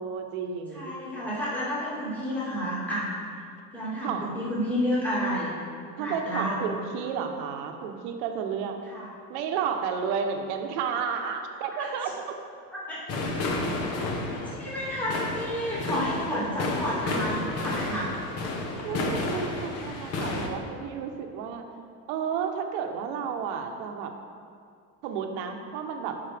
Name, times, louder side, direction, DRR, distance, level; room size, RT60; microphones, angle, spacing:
voice 1, 0.0-0.9 4.0-4.3 6.0-8.8 9.3-12.4 18.8-21.6 22.1-24.1 25.0-26.2, right 7 dB, 65° right, 5 dB, 1.0 m, -32 dB
voice 2, 0.7-3.1 3.7-5.5 6.0-6.7 8.9-9.1 11.8-11.9 12.7-13.0 14.6-18.1, equal, 5° left, -9 dB, 2.0 m, -30 dB
sound 1, 13.1-20.5, left 2 dB, 40° left, 1.0 m, -31 dB
12.5 x 5.6 x 3.4 m, 2.3 s
cardioid pair, 160°, 38 cm